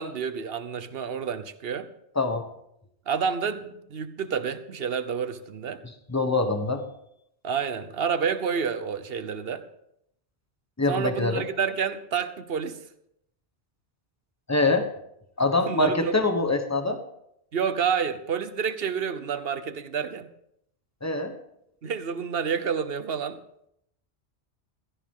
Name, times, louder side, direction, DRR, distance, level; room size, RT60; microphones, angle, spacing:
voice 1, 0.0-1.9 3.1-5.8 7.4-9.6 10.9-12.8 15.7-16.1 17.5-20.3 21.8-23.4, right 6 dB, 60° right, 10 dB, 1.1 m, -29 dB
voice 2, 2.1-2.5 5.8-6.8 10.8-11.4 14.5-14.9 15.4-17.0 21.0-21.3, left 2 dB, 15° left, 7 dB, 1.1 m, -24 dB
16.0 x 13.0 x 3.7 m, 0.76 s
omnidirectional pair, 1.1 m